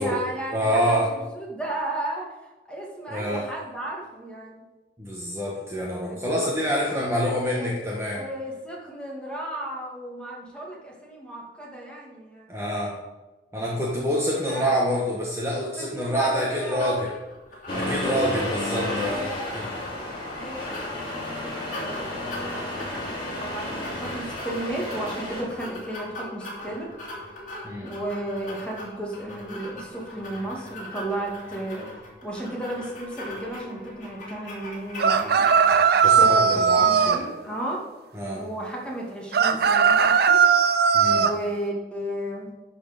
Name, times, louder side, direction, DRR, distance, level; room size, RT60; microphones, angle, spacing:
voice 1, 0.0-2.3 2.7-4.6 6.4-6.5 7.2-7.3 7.6-7.7 8.1-12.5 14.5-14.8 15.8-17.0 18.9-19.9 20.3-20.8 21.1-26.9 27.8-31.9 32.2-35.5 36.2-37.8 38.3-40.4 41.1-42.5, right 1 dB, 5° left, -3 dB, 2.0 m, -34 dB
voice 2, 0.5-1.1 3.1-3.4 5.0-8.2 12.5-13.0 13.5-17.1 17.7-19.7 27.6-27.9 36.0-37.3 38.1-38.4 40.9-41.3, equal, 15° right, -4 dB, 1.2 m, -26 dB
sound 1, 16.8-36.2, left 1 dB, 50° left, 2.2 m, -41 dB
Accelerating revving vroom, 17.7-25.4, left 1 dB, 30° left, 3.3 m, -31 dB
sound 2, 35.0-37.2 39.3-41.4, right 6 dB, 60° right, 0.5 m, -18 dB
11.5 x 4.4 x 5.1 m, 1.1 s
head